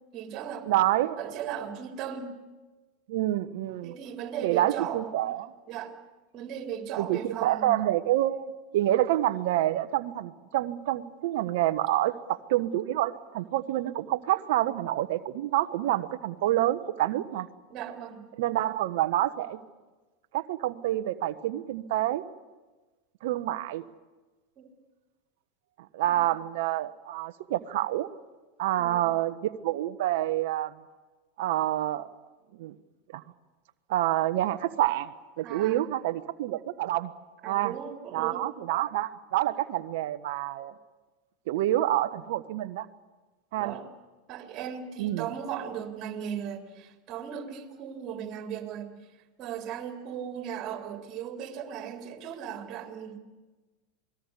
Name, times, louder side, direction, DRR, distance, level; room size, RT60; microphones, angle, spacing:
voice 1, 0.1-0.7 1.2-2.3 3.8-5.4 5.7-5.9 6.3-7.7 17.7-18.2 24.6-24.7 26.0-26.3 28.8-29.1 35.4-35.9 37.4-38.5 43.5-43.9 44.3-48.9 49.4-53.2, right 8 dB, 40° right, 3 dB, 3.8 m, -37 dB
voice 2, 0.7-1.2 3.1-3.9 4.4-5.5 7.0-17.5 18.4-19.6 20.3-22.2 23.2-23.8 25.9-28.1 28.6-30.7 31.4-32.1 32.6-32.7 33.1-33.2 33.9-35.1 35.4-37.1 37.4-37.7 38.1-40.7 41.5-42.9 43.5-43.7 45.0-45.3, right 14 dB, 65° right, 12 dB, 1.2 m, -27 dB
28.0 x 20.5 x 8.4 m, 1.2 s
hypercardioid pair, 100°, 0 cm